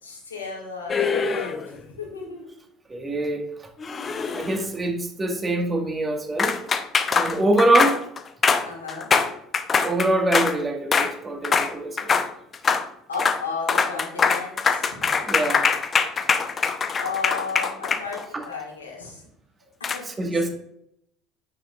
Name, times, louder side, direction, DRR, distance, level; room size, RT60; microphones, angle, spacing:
voice 1, 0.0-2.5 4.3-4.4 6.5-7.0 8.7-9.4 12.7-15.1 17.0-18.2 18.4-19.3 19.8-20.0 20.3-20.5, left 4 dB, 80° left, -2 dB, 2.1 m, -35 dB
sound 1, 0.9-1.8 3.8-4.7 6.4-10.6 10.9-11.1 11.4-11.7 12.0-12.3 12.5-12.9 13.1-13.4 13.7-18.4 19.8-20.0, left 5 dB, 30° left, 0.8 m, -23 dB
voice 2, 2.9-3.7 4.3-6.5 7.1-8.0 9.8-12.0 15.2-15.6 18.3-18.4 20.1-20.5, right 1 dB, 25° right, 4 dB, 1.6 m, -24 dB
9.3 x 7.7 x 2.4 m, 0.73 s
figure-of-eight pair, 60°, 0 cm